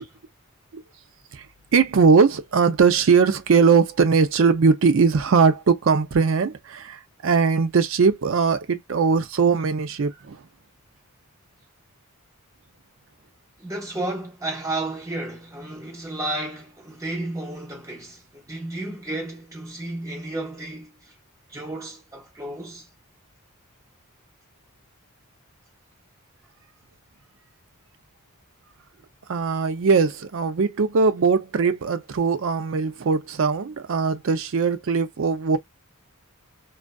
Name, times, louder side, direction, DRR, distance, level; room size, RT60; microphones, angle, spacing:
voice 1, 1.7-10.4 29.3-35.6, right 5 dB, 60° right, 0.4 m, -20 dB
voice 2, 13.6-21.1 21.5-22.9, right 2 dB, 15° right, 1.0 m, -32 dB
2.4 x 2.3 x 2.2 m
head